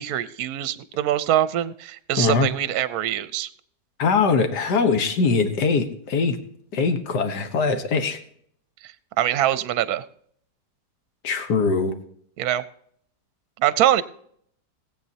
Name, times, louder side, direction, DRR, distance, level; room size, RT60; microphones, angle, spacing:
voice 1, 0.0-3.5 8.8-10.0 12.4-12.6 13.6-14.0, right 12 dB, 70° right, 15 dB, 1.1 m, -23 dB
voice 2, 2.2-2.5 4.0-6.4 6.7-8.2 11.2-11.9, left 4 dB, 75° left, 7 dB, 1.8 m, -22 dB
19.0 x 8.2 x 2.8 m, 0.64 s
omnidirectional pair, 1.8 m